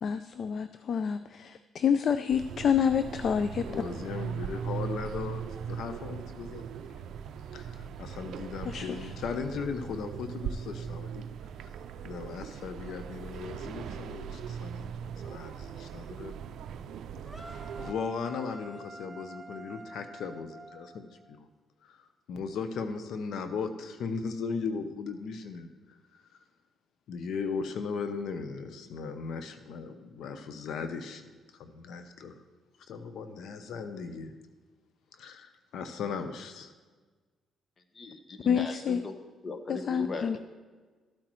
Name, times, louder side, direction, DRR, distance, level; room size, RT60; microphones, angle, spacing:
voice 1, 0.0-3.6 8.6-9.1 38.5-39.0 39.7-40.4, left 7 dB, 55° left, 11 dB, 0.4 m, -28 dB
sound 1, 2.3-17.9, right 7 dB, 75° right, 0.4 m, -39 dB
voice 2, 3.7-5.4 5.7-6.9 7.5-11.3 12.0-16.3 17.4-21.5 21.8-25.7 26.1-26.4 27.1-32.3 32.9-34.3 35.2-36.7, left 5 dB, 75° left, 8 dB, 0.8 m, -37 dB
sound 2, 17.3-21.4, right 1 dB, ahead, 0.7 m, -47 dB
voice 3, 37.9-39.2 39.4-40.4, left 3 dB, 40° left, 7 dB, 1.1 m, -38 dB
13.0 x 8.7 x 3.1 m, 1.4 s
cardioid pair, 90°, 0 cm